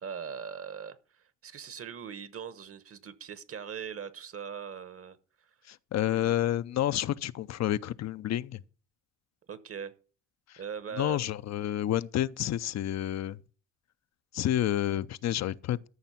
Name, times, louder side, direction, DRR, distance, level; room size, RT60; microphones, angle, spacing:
voice 1, 0.0-5.5 6.0-6.4 9.5-9.9 10.6-11.2, right 7 dB, 50° right, 1.2 m, -41 dB
voice 2, 5.7-8.6 11.0-13.4 14.3-15.9, left 12 dB, 60° left, 0.6 m, -29 dB
13.5 x 6.0 x 5.8 m
cardioid pair, 90°, 30 cm